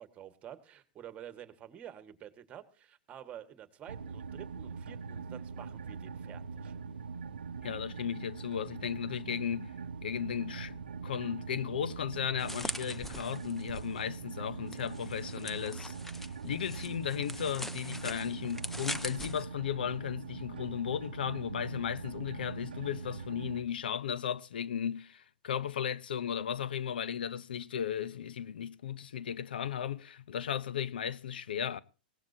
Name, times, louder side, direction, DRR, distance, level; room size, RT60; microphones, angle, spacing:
voice 1, 0.0-6.7, right 10 dB, 25° right, 1.8 m, -49 dB
sound 1, 3.9-23.6, right 5 dB, 85° right, 0.7 m, -42 dB
voice 2, 7.6-9.7 10.0-31.8, left 9 dB, 80° left, 0.8 m, -35 dB
sound 2, 12.4-14.0 14.7-19.4, left 1 dB, 5° left, 0.9 m, -42 dB
21.0 x 17.5 x 2.8 m
hypercardioid pair, 125°, 5 cm